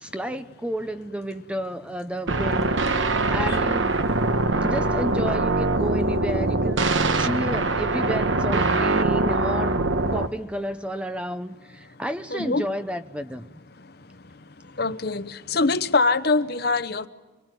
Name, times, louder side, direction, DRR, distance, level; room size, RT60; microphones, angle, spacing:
voice 1, 0.0-4.0 4.6-6.8 7.1-9.8 10.1-13.5, equal, 5° right, 0.7 m, -31 dB
sound 1, 2.3-10.3, right 2 dB, 70° right, 1.2 m, -23 dB
voice 2, 12.3-12.7 14.8-17.1, left 3 dB, 50° left, 1.0 m, -23 dB
26.0 x 21.5 x 9.1 m
head